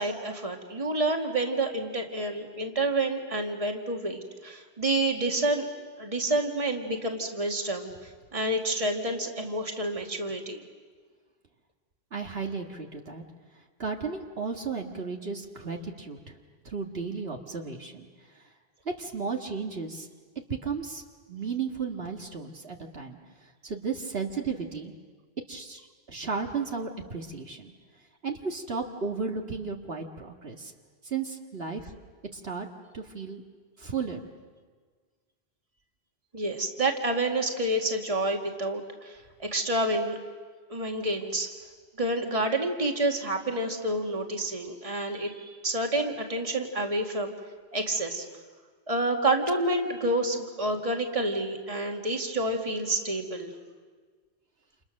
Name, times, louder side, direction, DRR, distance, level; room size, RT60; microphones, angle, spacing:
voice 1, 0.0-5.7 6.0-7.9 8.3-10.6 36.3-40.2 40.7-41.5 42.0-47.3 47.7-48.3 48.9-53.5, right 1 dB, 35° right, 2 dB, 2.2 m, -28 dB
voice 2, 12.1-13.2 13.8-16.4 16.7-18.1 18.4-18.5 19.0-20.1 20.6-21.0 21.3-23.2 23.6-24.9 25.5-27.7 28.2-30.7 31.0-31.9 32.3-32.7 32.9-33.4 33.8-34.2, right 5 dB, 70° right, 2 dB, 2.0 m, -34 dB
29.0 x 29.0 x 6.5 m, 1.5 s
omnidirectional pair, 1.1 m